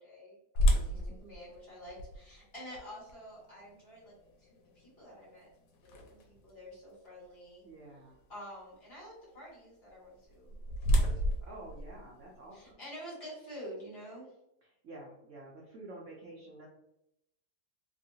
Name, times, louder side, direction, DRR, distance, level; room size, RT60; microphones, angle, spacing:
voice 1, 0.0-4.5 4.7-5.5 5.8-7.6 8.3-11.3 12.5-14.3, equal, 35° left, -7 dB, 1.6 m, -49 dB
sound 1, 0.6-6.5 7.1-7.2 7.8-8.0 10.1-12.7, equal, 85° left, 1.3 m, -33 dB
voice 2, 0.7-1.2 7.6-8.2 11.4-12.8 14.8-16.7, right 2 dB, 65° right, -2 dB, 0.7 m, -49 dB
3.1 x 2.6 x 2.7 m, 0.83 s
omnidirectional pair, 1.9 m